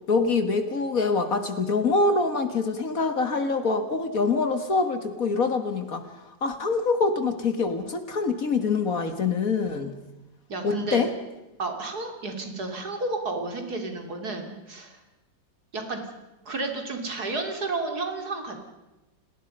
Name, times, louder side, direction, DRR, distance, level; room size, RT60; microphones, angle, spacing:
voice 1, 0.1-6.0 6.4-10.0 10.6-11.1, left 4 dB, 50° left, 9 dB, 1.9 m, -25 dB
voice 2, 10.5-11.0 11.6-15.0 15.7-16.0 16.4-18.7, right 2 dB, 55° right, 5 dB, 3.4 m, -31 dB
29.0 x 19.0 x 5.4 m, 1.0 s
omnidirectional pair, 2.0 m